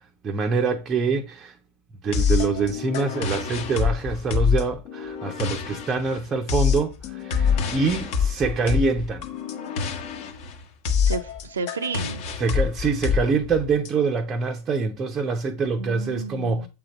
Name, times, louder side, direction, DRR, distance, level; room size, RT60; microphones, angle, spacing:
voice 1, 0.2-1.6 2.0-9.3 12.4-16.7, right 4 dB, 25° right, 0.6 m, -25 dB
sound 1, 2.1-13.9, left 6 dB, 45° left, 1.0 m, -26 dB
voice 2, 11.1-12.3 15.8-16.7, right 4 dB, 70° right, 0.5 m, -32 dB
7.4 x 3.9 x 4.2 m
figure-of-eight pair, 90°, 0 cm